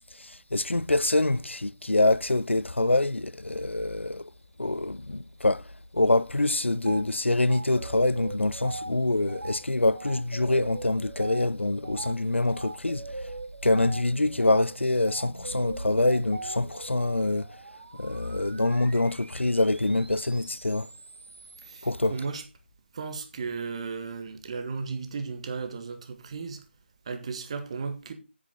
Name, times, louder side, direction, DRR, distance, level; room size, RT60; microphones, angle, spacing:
voice 1, 0.1-4.3 4.6-5.6 5.9-13.3 13.6-17.5 18.0-20.9 21.8-22.1, left 2 dB, 85° left, 0.5 m, -25 dB
sound 1, 6.8-7.0 7.5-17.2, right 2 dB, 80° right, 3.4 m, -39 dB
sound 2, 12.2-22.1, right 3 dB, 50° right, 1.4 m, -50 dB
voice 2, 21.6-22.4 22.9-26.6 27.0-28.1, right 4 dB, 30° right, 1.6 m, -35 dB
9.7 x 9.5 x 3.8 m
figure-of-eight pair, 155°, 6 cm